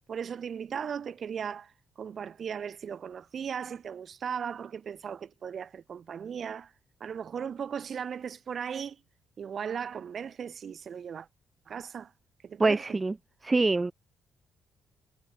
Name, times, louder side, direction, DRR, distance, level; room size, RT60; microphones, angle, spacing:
voice 1, 0.1-6.7 7.0-9.0 9.4-11.3 11.7-12.1 12.4-12.8, right 7 dB, 50° right, 6.9 m, -37 dB
voice 2, 12.6-13.1 13.4-13.9, right 3 dB, 20° right, 4.4 m, -24 dB
cardioid pair, 90°, 0 cm